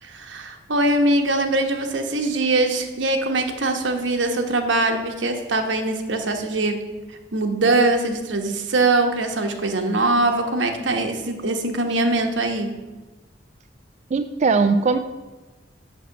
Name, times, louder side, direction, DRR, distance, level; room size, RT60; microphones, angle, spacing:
voice 1, 0.0-6.8 7.3-12.7, right 2 dB, 85° right, 5 dB, 1.1 m, -22 dB
voice 2, 14.1-15.0, right 4 dB, 40° right, 8 dB, 0.3 m, -19 dB
6.7 x 6.4 x 6.4 m, 1.2 s
head